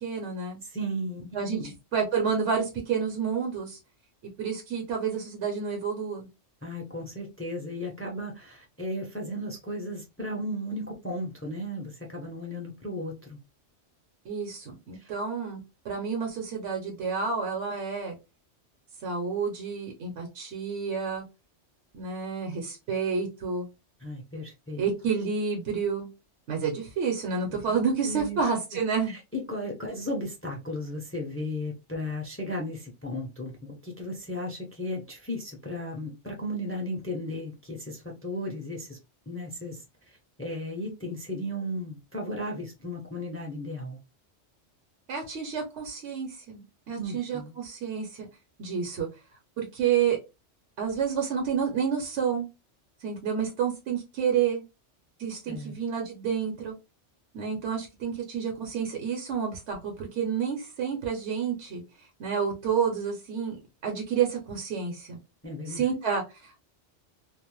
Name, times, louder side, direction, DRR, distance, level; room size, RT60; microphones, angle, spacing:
voice 1, 0.0-0.6 1.3-3.8 4.4-6.3 14.2-15.6 15.8-18.1 19.0-21.2 21.9-23.7 24.8-26.1 26.5-29.1 45.1-48.3 48.6-49.1 49.6-50.2 50.8-52.5 53.0-54.6 55.2-56.8 57.3-61.8 62.2-63.6 63.8-65.2 65.7-66.6, right 6 dB, 70° right, 1.0 m, -29 dB
voice 2, 0.7-1.2 1.5-1.7 6.6-13.4 24.0-24.8 27.5-27.8 28.1-28.4 29.1-39.0 39.3-39.8 40.1-44.0 46.9-47.6 55.5-55.7 65.4-65.8, left 1 dB, 20° left, 0.4 m, -35 dB
2.5 x 2.0 x 2.9 m
omnidirectional pair, 1.2 m